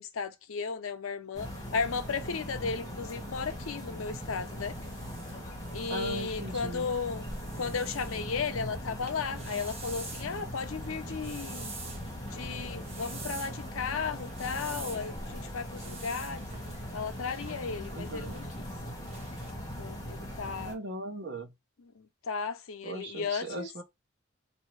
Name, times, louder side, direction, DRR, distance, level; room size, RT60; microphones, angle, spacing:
voice 1, 0.0-4.7 5.7-7.3 7.6-11.7 12.3-16.5 16.9-18.6 19.8-20.8 22.0-23.7, left 5 dB, 80° left, 0.6 m, -35 dB
sound 1, 1.3-20.7, equal, 15° left, 1.5 m, -40 dB
sound 2, 3.4-19.5, right 3 dB, 30° right, 1.1 m, -48 dB
voice 2, 5.9-6.9 17.9-18.4 20.7-21.5 22.8-23.8, right 1 dB, 55° right, 0.9 m, -38 dB
4.2 x 2.7 x 3.2 m
head